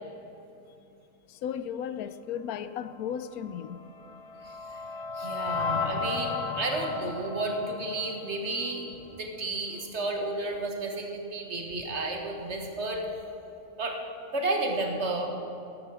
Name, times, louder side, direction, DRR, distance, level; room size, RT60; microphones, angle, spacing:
voice 1, 1.3-3.8, left 8 dB, 90° left, 12 dB, 1.1 m, -35 dB
sound 1, 3.6-8.8, left 4 dB, 50° left, 1.2 m, -34 dB
voice 2, 5.2-8.8 9.1-13.0 13.8-14.0 14.3-15.3, right 2 dB, 50° right, 2 dB, 1.7 m, -32 dB
13.5 x 12.5 x 4.9 m, 2.8 s
omnidirectional pair, 1.5 m